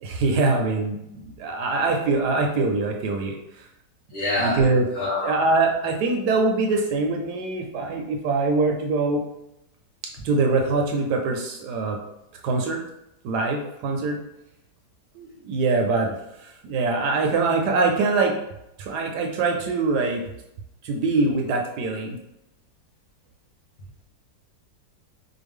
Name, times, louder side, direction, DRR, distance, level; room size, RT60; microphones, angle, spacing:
voice 1, 0.0-3.3 4.4-4.9 5.2-9.2 10.2-12.0 12.4-12.8 13.2-14.2 15.2-18.3 18.8-20.2 20.8-22.2, right 3 dB, 75° right, 2 dB, 1.1 m, -23 dB
voice 2, 4.1-4.6 4.9-5.3, left 1 dB, 65° left, -5 dB, 2.0 m, -25 dB
4.6 x 2.1 x 3.5 m, 0.86 s
omnidirectional pair, 2.0 m